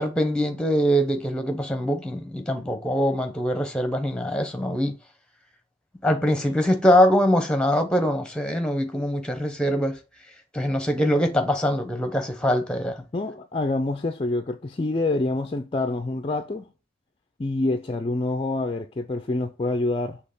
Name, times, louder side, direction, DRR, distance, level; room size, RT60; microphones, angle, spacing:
voice 1, 0.0-4.9 6.0-10.0 10.5-13.0, equal, 5° left, 0.8 m, -23 dB
voice 2, 13.1-16.7 17.4-20.2, left 2 dB, 25° left, 0.4 m, -26 dB
6.4 x 2.9 x 5.5 m
head